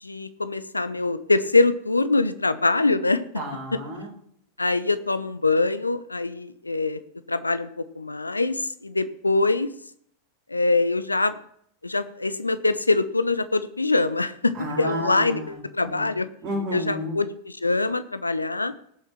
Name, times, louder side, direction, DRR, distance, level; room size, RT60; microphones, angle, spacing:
voice 1, 0.0-3.2 4.6-7.0 7.3-7.7 7.9-9.7 10.5-11.4 11.8-16.3 16.7-18.7, left 3 dB, 80° left, 13 dB, 0.8 m, -23 dB
voice 2, 3.3-4.1 14.5-16.1 16.4-17.2, right 1 dB, 35° right, -3 dB, 5.1 m, -32 dB
18.0 x 7.3 x 4.5 m, 0.66 s
figure-of-eight pair, 90°, 0 cm